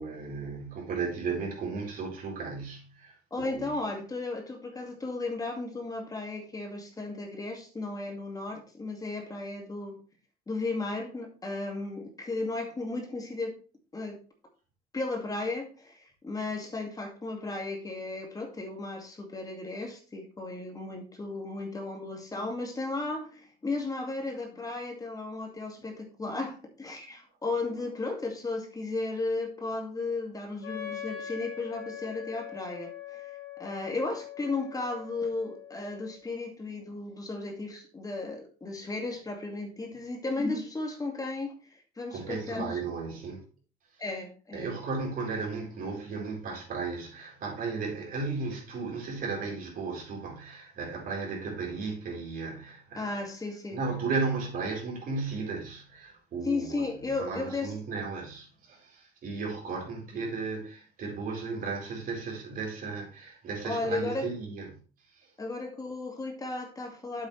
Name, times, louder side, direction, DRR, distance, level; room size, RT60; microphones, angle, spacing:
voice 1, 0.0-3.7 42.1-43.4 44.5-53.1 53.7-64.8 65.1-65.3, right 4 dB, 55° right, 4.4 m, -35 dB
voice 2, 3.3-10.0 10.5-13.5 13.9-14.2 14.9-33.3 33.6-42.7 44.0-44.7 53.0-53.8 56.4-57.7 63.6-64.3 65.4-67.3, left 3 dB, 20° left, 2.2 m, -35 dB
Wind instrument woodwind instrument, 30.6-36.3, left 9 dB, 70° left, 2.8 m, -42 dB
8.8 x 7.7 x 3.3 m
cardioid pair, 110°, 17 cm